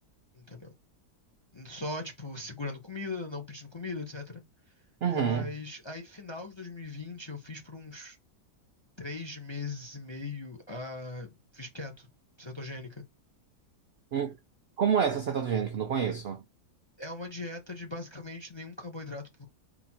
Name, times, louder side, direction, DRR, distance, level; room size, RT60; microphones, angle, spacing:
voice 1, 0.3-0.7 1.5-4.4 5.1-8.2 9.0-12.1 12.4-13.0 17.0-19.5, left 3 dB, 30° left, 0.5 m, -39 dB
voice 2, 5.0-5.4 14.1-14.4 14.8-16.4, right 7 dB, 70° right, 0.5 m, -28 dB
4.1 x 2.7 x 4.3 m
omnidirectional pair, 1.7 m